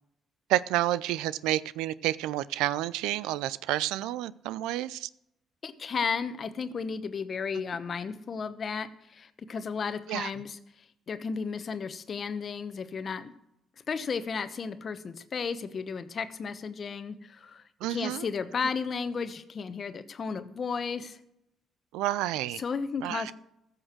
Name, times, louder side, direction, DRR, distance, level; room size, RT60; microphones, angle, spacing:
voice 1, 0.5-5.1 10.1-10.3 17.8-18.2 21.9-22.6 23.0-23.3, right 14 dB, 85° right, 19 dB, 0.4 m, -30 dB
voice 2, 5.6-10.6 11.1-13.3 13.9-17.6 17.9-21.2 22.6-23.3, left 5 dB, 50° left, 11 dB, 1.0 m, -33 dB
15.0 x 6.4 x 6.1 m, 0.81 s
supercardioid pair, 60°, 0 cm